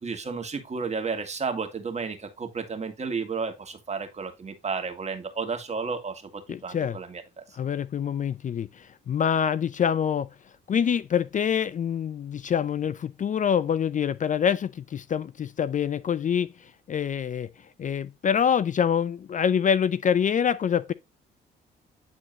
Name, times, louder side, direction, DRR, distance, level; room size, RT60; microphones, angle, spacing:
voice 1, 0.0-7.2, right 5 dB, 35° right, 2.0 m, -32 dB
voice 2, 6.5-7.0 7.5-10.3 10.7-17.5 17.8-20.9, left 8 dB, 40° left, 0.5 m, -26 dB
9.4 x 3.9 x 3.9 m
supercardioid pair, 65°, 20 cm